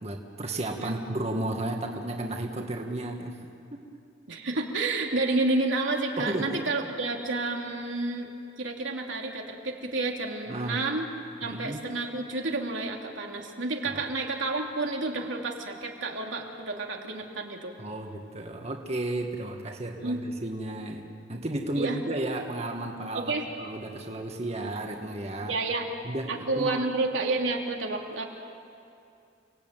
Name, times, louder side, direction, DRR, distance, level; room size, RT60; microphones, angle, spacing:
voice 1, 0.0-3.4 6.2-6.6 10.5-10.8 11.4-11.8 13.8-14.0 17.8-21.0 21.3-23.3 23.6-25.5 26.0-26.8, right 1 dB, 35° right, 2 dB, 1.9 m, -33 dB
voice 2, 4.3-8.3 8.6-11.1 11.4-17.7 20.0-20.2 21.7-22.0 23.1-23.5 25.4-25.9 26.3-28.2, right 2 dB, 85° right, 1 dB, 3.1 m, -30 dB
30.0 x 18.5 x 9.2 m, 2.5 s
head